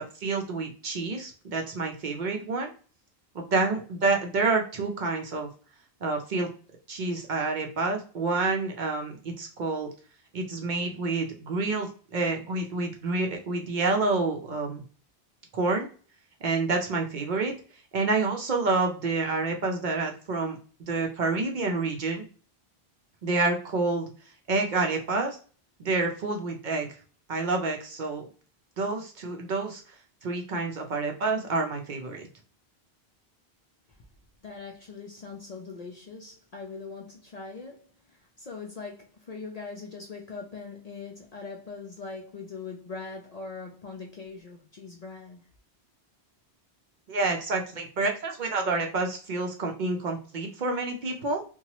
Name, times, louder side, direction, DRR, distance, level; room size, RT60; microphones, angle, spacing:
voice 1, 0.0-2.7 3.3-5.5 6.0-6.5 6.9-9.9 10.3-14.8 15.5-15.9 16.4-17.5 17.9-22.2 23.2-24.1 24.5-25.4 25.8-26.9 27.3-28.3 28.8-29.9 30.2-32.3 47.1-51.4, right 3 dB, 55° right, 0.6 m, -28 dB
voice 2, 34.4-45.4, left 4 dB, 55° left, 0.4 m, -41 dB
2.8 x 2.2 x 2.9 m
omnidirectional pair, 1.1 m